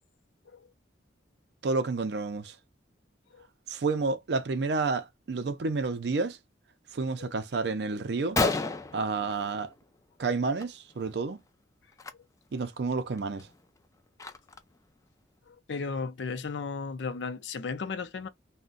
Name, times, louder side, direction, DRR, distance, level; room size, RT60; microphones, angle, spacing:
voice 1, 1.6-2.6 3.7-6.4 6.9-8.4 8.9-9.7 10.2-11.4 12.5-13.5, right 4 dB, 60° right, 0.4 m, -30 dB
Gunshot gunfire, 7.7-7.8 8.1-8.2 8.4-10.0 10.3-10.6 10.9-11.1 11.9-12.1 12.6-12.7 13.2-14.8, left 3 dB, 15° left, 0.3 m, -32 dB
voice 2, 15.5-18.3, left 4 dB, 70° left, 0.5 m, -35 dB
2.5 x 2.1 x 3.7 m
head